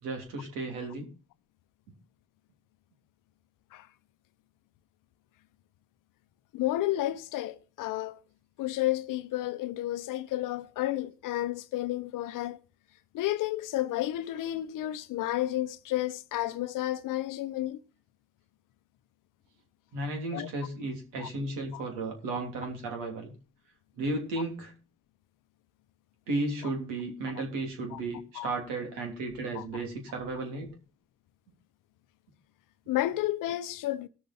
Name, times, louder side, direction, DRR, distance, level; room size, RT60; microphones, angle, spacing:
voice 1, 0.0-1.1 19.9-23.3 24.0-24.7 26.3-30.8, right 2 dB, 90° right, 3.1 m, -34 dB
voice 2, 6.5-8.2 8.6-12.6 13.1-17.8 20.3-20.5 21.2-21.3 21.7-21.8 26.6-26.7 27.9-28.0 28.3-28.5 29.5-29.7 32.9-34.1, left 14 dB, 80° left, 0.9 m, -31 dB
19.0 x 6.7 x 4.2 m
supercardioid pair, 50°, 32 cm